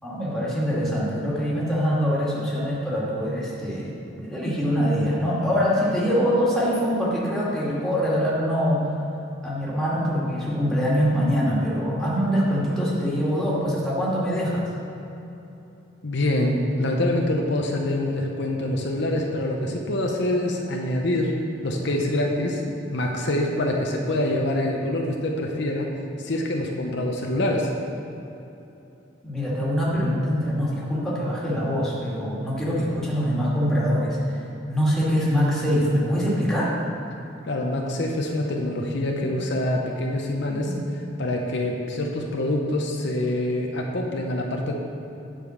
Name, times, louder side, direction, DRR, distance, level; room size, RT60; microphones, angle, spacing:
voice 1, 0.0-8.9 9.4-14.7 29.2-34.2 34.7-36.7 40.5-40.8, equal, ahead, -7 dB, 2.1 m, -24 dB
voice 2, 16.0-21.3 21.6-25.9 26.2-27.7 37.4-44.8, left 1 dB, 65° left, 1 dB, 0.8 m, -25 dB
9.2 x 5.2 x 6.3 m, 2.9 s
head